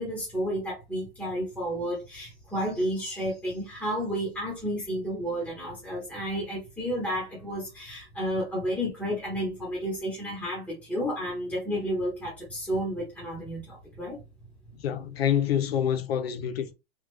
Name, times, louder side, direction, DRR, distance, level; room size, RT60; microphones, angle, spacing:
voice 1, 0.0-14.2, equal, 5° left, 0.9 m, -31 dB
voice 2, 14.8-16.7, left 9 dB, 85° left, 0.8 m, -26 dB
3.3 x 2.4 x 3.3 m
supercardioid pair, 155°, 30 cm